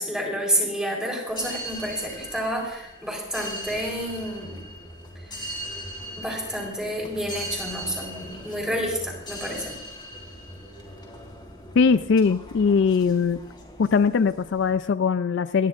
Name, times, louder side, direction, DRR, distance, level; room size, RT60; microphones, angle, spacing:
voice 1, 0.0-4.6 5.3-5.5 6.2-9.8, equal, 5° right, -1 dB, 4.1 m, -29 dB
sound 1, 1.3-14.8, equal, 25° left, 3.5 m, -39 dB
voice 2, 11.8-13.4 13.8-15.7, left 5 dB, 65° left, 12 dB, 0.4 m, -21 dB
28.0 x 11.0 x 2.5 m, 0.89 s
head